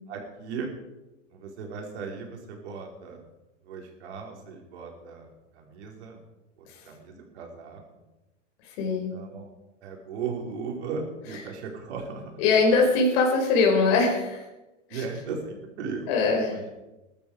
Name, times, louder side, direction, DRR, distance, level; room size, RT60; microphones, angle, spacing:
voice 1, 0.1-0.7 1.3-3.2 3.6-6.2 6.6-7.8 8.9-9.5 9.8-12.4 14.9-16.2 16.5-16.7, right 5 dB, 60° right, 1 dB, 4.9 m, -37 dB
voice 2, 8.7-9.1 12.4-14.4 14.9-15.0 16.1-16.5, left 4 dB, 55° left, 0 dB, 5.0 m, -22 dB
21.0 x 12.5 x 5.0 m, 1.0 s
figure-of-eight pair, 90°, 37 cm